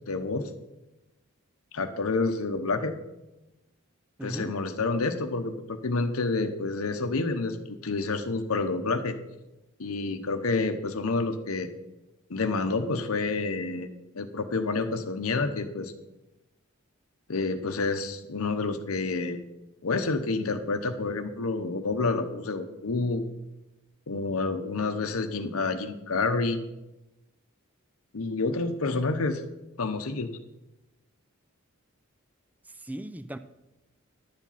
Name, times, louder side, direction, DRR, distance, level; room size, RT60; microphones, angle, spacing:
voice 1, 0.1-0.5 1.7-2.9 4.2-9.2 9.8-11.7 12.3-13.9 14.1-15.9 17.3-19.4 19.8-23.2 24.1-26.6 28.1-29.4 29.8-30.3, left 3 dB, 85° left, 0.8 m, -28 dB
voice 2, 4.2-4.5 32.7-33.4, right 1 dB, 5° right, 0.3 m, -37 dB
11.5 x 7.4 x 5.6 m
head